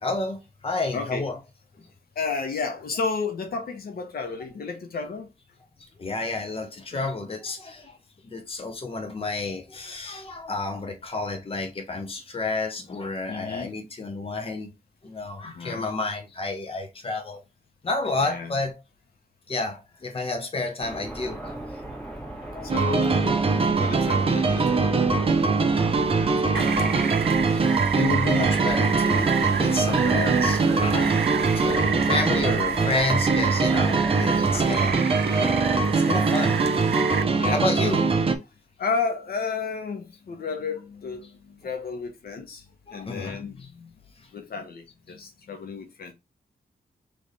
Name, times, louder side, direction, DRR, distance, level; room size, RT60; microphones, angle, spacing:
voice 1, 0.0-1.4 1.8-1.9 6.0-8.0 8.2-14.7 15.0-17.4 17.8-18.8 19.5-21.4 22.3-22.7 24.6-24.7 26.4-27.1 27.5-27.6 28.0-31.2 31.5-35.6 36.0-36.8 37.5-38.3 42.9-43.4, left 3 dB, 35° left, 1.0 m, -30 dB
voice 2, 0.9-1.3 2.2-5.3 6.9-7.1 13.3-13.7 15.4-15.8 18.2-18.6 22.6-27.1 32.7-33.1 37.4-37.6 38.8-41.3 41.6-42.6 42.9-43.9 44.3-46.1, left 4 dB, 70° left, 1.0 m, -32 dB
sound 1, 20.8-35.0, right 1 dB, 5° left, 1.8 m, -39 dB
sound 2, 22.7-38.4, right 4 dB, 35° right, 0.7 m, -22 dB
Rain, 26.5-37.2, right 8 dB, 90° right, 0.6 m, -31 dB
3.3 x 3.3 x 4.1 m
wide cardioid pair, 120°, 16 cm